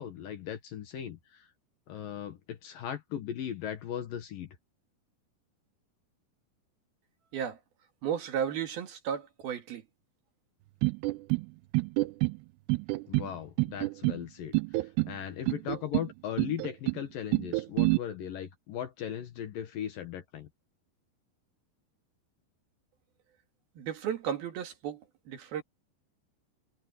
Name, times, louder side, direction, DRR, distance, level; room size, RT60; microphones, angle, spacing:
voice 1, 0.0-1.5 1.9-4.5 13.1-20.5, left 9 dB, 65° left, 2.7 m, -38 dB
voice 2, 8.0-9.8 23.8-25.0 25.3-25.6, right 8 dB, 65° right, 3.7 m, -34 dB
sound 1, 10.8-11.5 11.7-12.4 12.7-13.3 13.6-14.2 14.5-15.2 15.5-16.1 16.4-17.0 17.3-18.0, right 24 dB, 80° right, 2.6 m, -27 dB
omnidirectional pair, 5.0 m